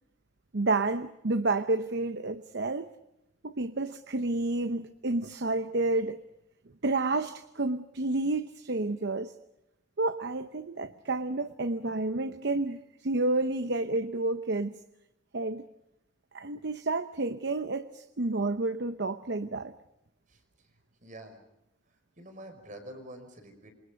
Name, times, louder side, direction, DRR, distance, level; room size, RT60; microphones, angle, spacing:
voice 1, 0.5-2.9 3.4-6.2 6.8-9.3 10.0-14.8 15.3-15.7 16.3-19.7, right 2 dB, 60° right, 11 dB, 0.8 m, -30 dB
voice 2, 20.3-20.7 21.0-21.4 22.2-23.7, right 1 dB, 45° right, 6 dB, 5.5 m, -47 dB
27.5 x 26.0 x 5.2 m, 0.87 s
head